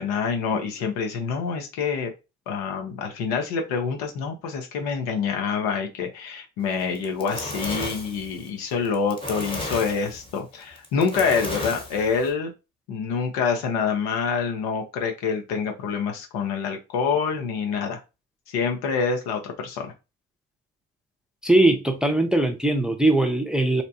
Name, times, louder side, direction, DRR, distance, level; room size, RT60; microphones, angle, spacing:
voice 1, 0.0-2.1 2.5-12.5 12.9-18.0 18.5-19.9, left 5 dB, 80° left, 0.8 m, -26 dB
Fire, 6.8-12.3, left 1 dB, 15° left, 1.1 m, -34 dB
voice 2, 21.4-23.8, right 2 dB, ahead, 0.6 m, -20 dB
2.7 x 2.1 x 2.7 m
hypercardioid pair, 55°, 36 cm